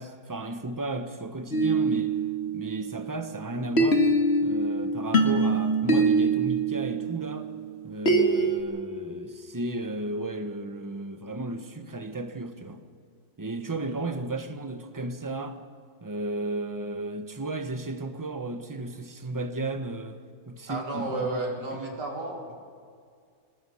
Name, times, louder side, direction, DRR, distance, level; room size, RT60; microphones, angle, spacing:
voice 1, 0.0-2.1 2.5-4.0 4.4-7.5 7.8-12.8 13.4-15.6 16.0-20.2 20.5-21.9, right 2 dB, 15° right, 0.7 m, -34 dB
sound 1, 1.5-3.3 3.8-8.6, right 2 dB, 35° left, 2.0 m, -24 dB
voice 2, 20.7-22.5, right 2 dB, 70° right, 4.0 m, -32 dB
26.0 x 20.0 x 5.7 m
omnidirectional pair, 1.9 m